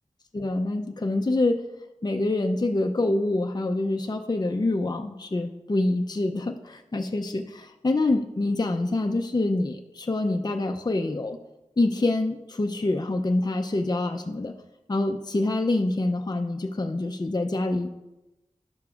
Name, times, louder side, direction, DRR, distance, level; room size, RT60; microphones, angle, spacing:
voice 1, 0.3-1.6 2.0-11.4 11.8-14.5 14.9-17.9, left 2 dB, 30° left, 5 dB, 0.5 m, -26 dB
11.0 x 6.6 x 2.4 m, 1.0 s
wide cardioid pair, 45°, 13 cm